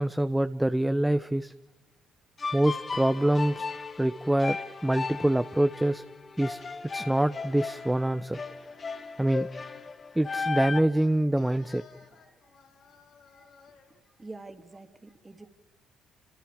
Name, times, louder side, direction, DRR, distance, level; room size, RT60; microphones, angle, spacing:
voice 1, 0.0-1.5 2.5-3.7 4.0-4.6 4.8-6.0 6.4-6.6 6.9-8.4 9.2-9.5 10.1-11.8, right 1 dB, 10° right, 11 dB, 0.9 m, -25 dB
sound 1, 2.4-10.8, left 4 dB, 40° left, 2.1 m, -36 dB
Singing, 2.8-5.6 6.7-9.9 10.9-14.0, left 6 dB, 70° left, 6.4 m, -58 dB
voice 2, 14.2-15.5, right 3 dB, 25° right, 6 dB, 3.1 m, -46 dB
29.0 x 27.0 x 5.1 m, 1.1 s
supercardioid pair, 65°, 0 cm